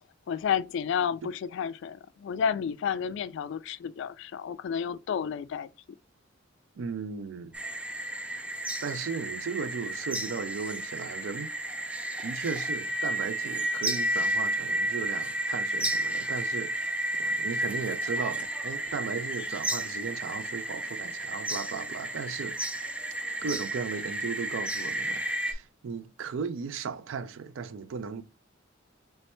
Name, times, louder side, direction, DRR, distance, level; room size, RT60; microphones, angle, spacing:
voice 1, 0.3-5.7, left 7 dB, 65° left, 0.3 m, -31 dB
voice 2, 6.8-7.5 8.8-11.5 12.2-16.9 17.2-22.6 23.4-28.2, right 5 dB, 75° right, 0.4 m, -36 dB
sound 1, 7.5-25.5, right 1 dB, 5° right, 0.4 m, -32 dB
3.2 x 3.2 x 3.0 m
head